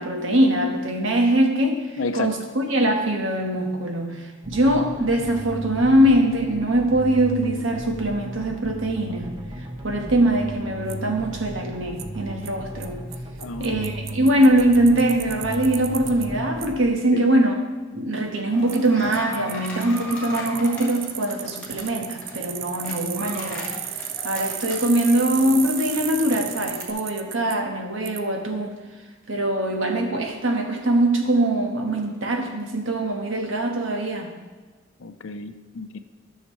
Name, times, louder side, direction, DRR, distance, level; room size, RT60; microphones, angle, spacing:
voice 1, 0.0-1.8 2.1-9.4 9.8-13.1 13.6-17.6 17.9-23.7 24.2-28.7 29.3-34.3, right 1 dB, 75° right, 2 dB, 1.3 m, -22 dB
voice 2, 2.0-2.5 13.4-13.9 17.1-17.3 35.0-36.0, left 3 dB, 85° left, 10 dB, 0.6 m, -31 dB
sound 1, 4.4-16.8, right 1 dB, 25° right, 0.8 m, -36 dB
Bicycle, 10.9-11.0 12.0-12.1 12.5-12.6 12.8-12.9 13.1-13.2 13.4-16.3 16.6-16.7 18.7-18.8 19.1-27.5 28.1-28.2, right 10 dB, 45° right, 0.4 m, -34 dB
sound 2, 18.5-26.9, left 1 dB, 5° left, 1.5 m, -39 dB
13.0 x 6.4 x 3.2 m, 1.4 s
head